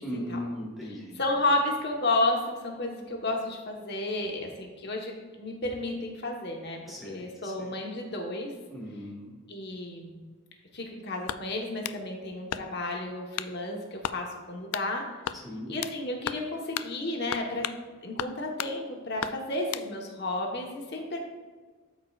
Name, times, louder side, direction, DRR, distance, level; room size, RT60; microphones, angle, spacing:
voice 1, 0.0-1.2 6.9-7.8 8.7-9.3 15.3-15.7, equal, ahead, -4 dB, 1.5 m, -38 dB
voice 2, 1.2-8.5 9.5-10.2 10.7-15.0 15.7-17.7 18.0-21.2, left 2 dB, 50° left, 1 dB, 1.2 m, -32 dB
sound 1, 11.2-12.0 12.5-12.9 13.4-13.6 14.0-14.2 14.7-14.9 15.2-16.0 16.3-16.5 16.7-16.9 17.3-17.8 18.2-18.7 19.2-19.9, left 10 dB, 75° left, 0.3 m, -35 dB
12.5 x 4.7 x 2.4 m, 1.4 s
head